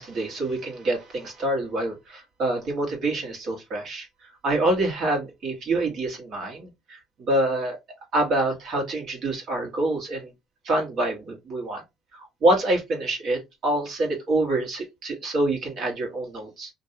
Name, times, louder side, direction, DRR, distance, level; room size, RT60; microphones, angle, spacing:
voice 1, 0.0-4.1 4.4-7.8 8.1-10.3 10.6-11.8 12.1-16.7, right 2 dB, 60° right, 1.5 m, -26 dB
3.0 x 2.6 x 2.8 m
supercardioid pair, 75°, 0 cm